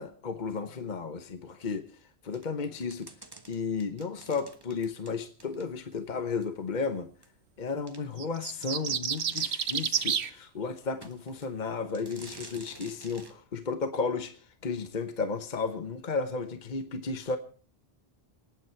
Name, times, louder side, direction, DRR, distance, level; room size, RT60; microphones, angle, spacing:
voice 1, 0.0-1.8 2.2-3.1 3.5-7.1 7.6-14.3 14.6-17.4, left 4 dB, 50° left, 9 dB, 1.2 m, -33 dB
sound 1, 2.3-6.0 6.4-6.5 7.2-7.3 7.9-8.0 8.4-8.5 8.7-10.4 11.0-11.5 11.9-13.4, right 2 dB, 25° right, 1.3 m, -50 dB
sound 2, 8.2-10.3, right 8 dB, 90° right, 1.1 m, -29 dB
27.0 x 9.3 x 4.6 m, 0.40 s
omnidirectional pair, 1.1 m